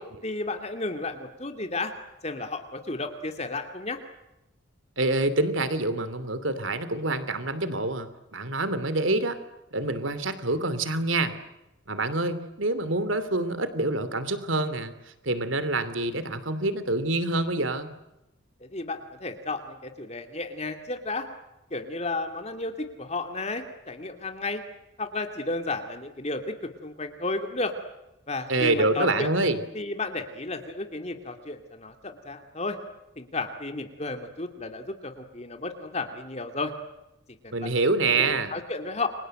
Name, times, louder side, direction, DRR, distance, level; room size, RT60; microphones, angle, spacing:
voice 1, 0.2-1.9 2.2-4.0 18.6-21.3 21.7-24.6 25.0-27.7 28.3-29.3 29.7-32.8 33.2-36.7 37.4-37.7 38.2-39.1, left 2 dB, 35° left, 7 dB, 2.6 m, -33 dB
voice 2, 5.0-9.4 9.7-11.3 11.9-14.9 15.2-17.9 28.5-29.6 37.5-38.5, right 2 dB, 80° right, 13 dB, 2.9 m, -26 dB
29.5 x 24.5 x 7.8 m, 0.93 s
head